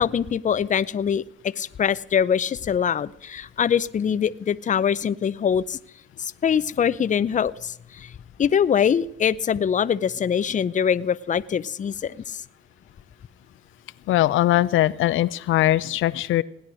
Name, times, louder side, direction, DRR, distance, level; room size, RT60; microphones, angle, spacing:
voice 1, 0.0-5.8 6.2-8.1 8.4-12.4, left 8 dB, 40° left, 15 dB, 0.6 m, -23 dB
voice 2, 14.1-16.4, left 14 dB, 80° left, 14 dB, 0.6 m, -20 dB
17.0 x 10.5 x 6.3 m, 0.74 s
cardioid pair, 90°, 20 cm